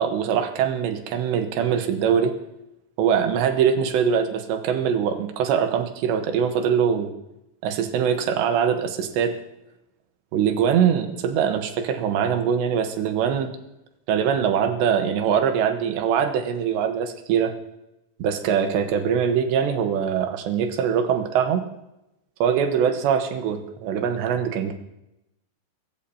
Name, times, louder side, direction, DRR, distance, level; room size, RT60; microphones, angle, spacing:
voice 1, 0.0-2.3 3.0-7.1 7.6-9.4 10.3-13.5 14.1-17.5 18.2-21.6 22.4-24.7, right 7 dB, 75° right, 6 dB, 3.2 m, -22 dB
24.5 x 14.0 x 2.9 m, 0.86 s
omnidirectional pair, 5.4 m